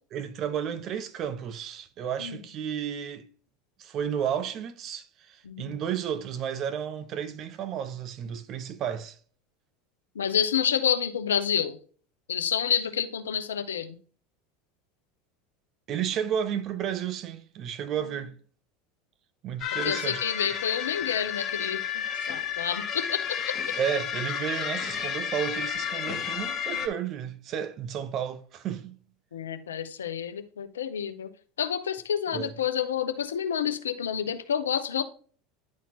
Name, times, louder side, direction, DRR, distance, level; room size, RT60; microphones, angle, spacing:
voice 1, 0.1-3.3 3.8-9.2 15.9-18.3 19.4-20.2 23.8-29.0 32.3-32.5, right 8 dB, 45° right, 0.9 m, -32 dB
voice 2, 5.5-5.8 10.1-11.8 12.3-14.0 19.8-23.4 29.3-31.3 31.6-35.0, left 8 dB, 80° left, 0.7 m, -29 dB
sound 1, 19.6-26.9, left 8 dB, 40° left, 1.3 m, -32 dB
10.5 x 4.2 x 3.0 m
hypercardioid pair, 80°, 0 cm